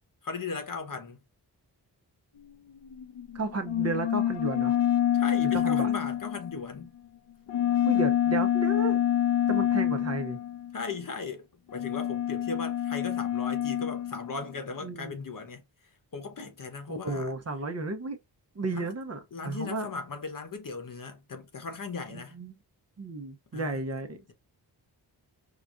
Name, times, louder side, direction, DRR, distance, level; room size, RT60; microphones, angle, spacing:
voice 1, 0.2-1.2 5.1-6.9 10.7-17.3 18.7-18.9 19.3-22.4 23.5-23.8, left 4 dB, 50° left, 1.0 m, -37 dB
sound 1, 2.5-6.8 7.5-10.8 11.7-14.5, left 11 dB, 90° left, 0.7 m, -27 dB
voice 2, 3.3-4.7 5.4-5.9 7.8-9.0 9.5-10.4 14.8-15.1 16.9-18.2 18.5-19.9 22.1-22.5 23.0-24.3, right 3 dB, 40° right, 0.7 m, -33 dB
4.8 x 2.2 x 2.5 m
wide cardioid pair, 105°, 41 cm